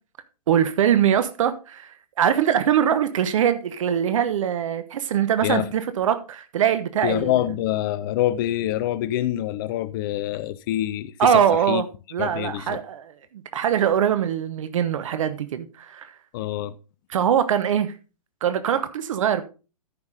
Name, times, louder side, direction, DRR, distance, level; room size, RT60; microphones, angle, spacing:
voice 1, 0.5-7.4 11.2-11.8 12.1-16.2 17.1-17.9 18.4-19.4, right 9 dB, 55° right, 1.0 m, -22 dB
voice 2, 7.0-11.4 11.7-11.8 12.2-12.8 16.3-16.7, left 13 dB, 35° left, 0.5 m, -25 dB
13.5 x 5.9 x 3.7 m
figure-of-eight pair, 115°, 20 cm